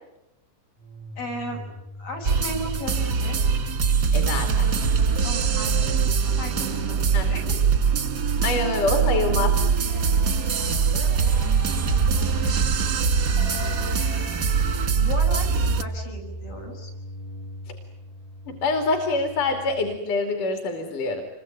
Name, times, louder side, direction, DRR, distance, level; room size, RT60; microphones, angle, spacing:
sound 1, 0.8-20.0, equal, 15° left, 0.9 m, -38 dB
voice 1, 1.2-1.6 2.0-3.5 5.2-7.6 9.9-12.6 13.4-14.2 14.9-16.9, equal, 85° left, 1 dB, 8.0 m, -37 dB
sound 2, 2.2-15.8, right 6 dB, 55° right, 1.1 m, -22 dB
voice 2, 4.1-4.7 7.1-7.3 8.4-9.6 18.5-21.2, left 3 dB, 65° left, 4 dB, 4.0 m, -25 dB
27.0 x 23.0 x 9.2 m, 0.94 s
omnidirectional pair, 3.9 m